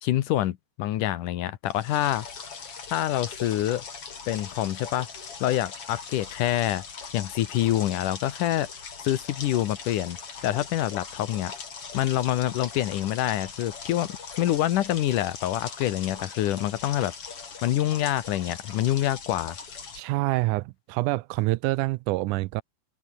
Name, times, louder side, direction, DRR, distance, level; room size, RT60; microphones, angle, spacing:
voice 1, 0.0-2.3 2.9-3.8 4.3-5.1 5.4-6.8 7.1-8.7 9.0-10.2 10.4-11.5 11.9-17.1 17.6-19.6, left 13 dB, 70° left, 2.5 m, -26 dB
sound 1, 1.7-20.0, left 5 dB, 45° left, 4.0 m, -41 dB
voice 2, 20.0-22.6, right 20 dB, 80° right, 1.9 m, -26 dB
omnidirectional pair, 3.9 m